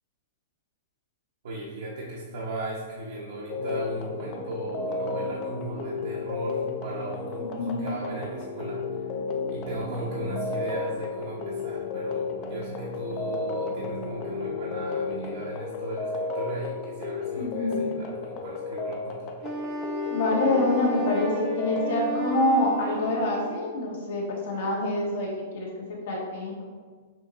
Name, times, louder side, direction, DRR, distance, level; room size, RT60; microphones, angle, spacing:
voice 1, 1.4-8.8 9.5-19.3, right 1 dB, 70° right, -5 dB, 1.0 m, -37 dB
sound 1, 3.5-21.9, left 5 dB, 35° left, 0.5 m, -33 dB
sound 2, 3.5-15.5, right 6 dB, 90° right, 0.5 m, -41 dB
voice 2, 7.4-7.8 17.4-17.9 20.1-26.5, left 1 dB, 70° left, -3 dB, 1.4 m, -26 dB
Wind instrument woodwind instrument, 19.4-23.7, equal, 35° right, 0.8 m, -34 dB
6.1 x 2.8 x 3.1 m, 1.5 s
hypercardioid pair, 145°, 0 cm